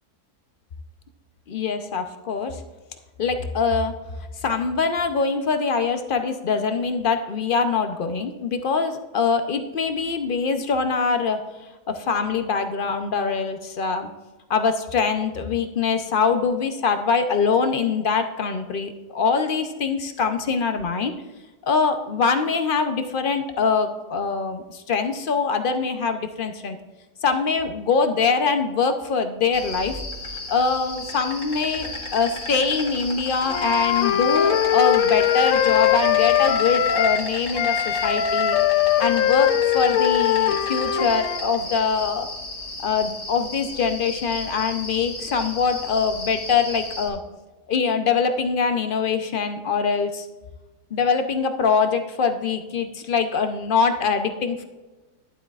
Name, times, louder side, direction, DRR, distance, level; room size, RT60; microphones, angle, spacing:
voice 1, 1.5-2.6 3.2-3.9 4.4-11.4 11.9-14.1 14.5-21.1 21.7-26.8 27.2-30.0 30.5-38.6 39.0-42.3 42.8-47.2 47.7-50.3 50.9-54.7, left 5 dB, 55° left, 7 dB, 0.6 m, -23 dB
Insect, 29.5-47.1, left 2 dB, 35° left, 1.7 m, -34 dB
Wind instrument woodwind instrument, 33.5-37.3 37.5-41.4, left 10 dB, 70° left, 1.0 m, -21 dB
11.5 x 11.5 x 2.4 m, 1.2 s
omnidirectional pair, 1.6 m